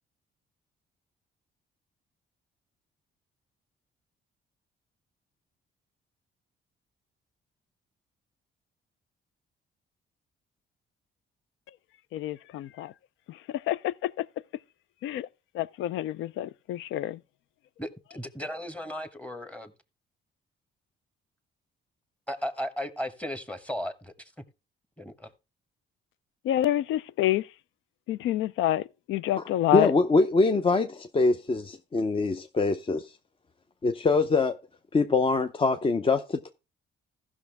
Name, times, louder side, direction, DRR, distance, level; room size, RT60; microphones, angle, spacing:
voice 1, 12.1-12.9 13.7-13.8 15.0-15.3 15.6-17.2 26.5-27.4 28.1-28.8 29.1-29.9, left 13 dB, 80° left, 0.4 m, -27 dB
voice 2, 17.8-19.7 22.3-24.1 25.0-25.3, equal, 5° left, 1.1 m, -35 dB
voice 3, 29.7-33.1 33.8-34.6 34.9-36.5, left 3 dB, 25° left, 0.6 m, -24 dB
15.0 x 6.1 x 3.4 m
cardioid pair, 90°, 20 cm